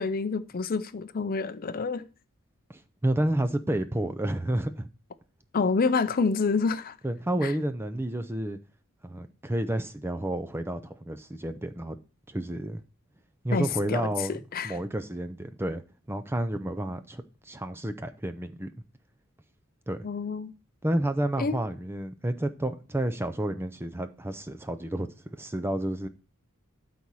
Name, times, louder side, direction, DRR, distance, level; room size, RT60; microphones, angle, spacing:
voice 1, 0.0-2.1 5.5-7.0 7.4-7.5 13.5-14.8 20.0-20.5 21.4-21.6, left 4 dB, 40° left, 0.5 m, -28 dB
voice 2, 2.7-4.9 7.0-8.6 9.0-12.0 12.3-12.8 13.4-14.4 14.6-15.8 16.1-18.7 19.9-20.0 20.8-26.1, right 1 dB, 10° right, 0.5 m, -30 dB
12.0 x 4.2 x 4.7 m
head